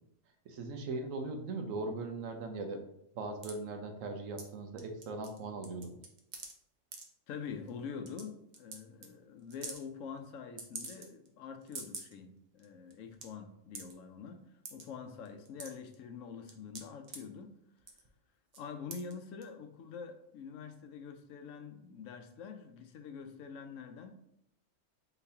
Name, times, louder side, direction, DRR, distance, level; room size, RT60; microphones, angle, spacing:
voice 1, 0.4-2.8 3.1-5.9, right 3 dB, 90° right, 4 dB, 1.1 m, -39 dB
sound 1, 3.4-3.5 4.4-4.5 4.8-5.4 5.6-6.5 6.9-7.0 7.7-7.8 8.1-8.2 8.5-8.8 9.0-9.1 9.5-9.8 10.6-11.3 11.6-12.1 12.6-12.7 12.9-13.2 13.7-13.9 14.6-14.8 15.3-15.9 16.5-17.2 17.8-18.1 18.5-18.6 18.9-19.1 19.4-19.5, right 4 dB, 45° right, 0.6 m, -44 dB
voice 2, 7.3-17.6 18.5-24.1, left 6 dB, 85° left, 7 dB, 1.0 m, -45 dB
4.0 x 3.9 x 2.7 m, 0.76 s
omnidirectional pair, 1.3 m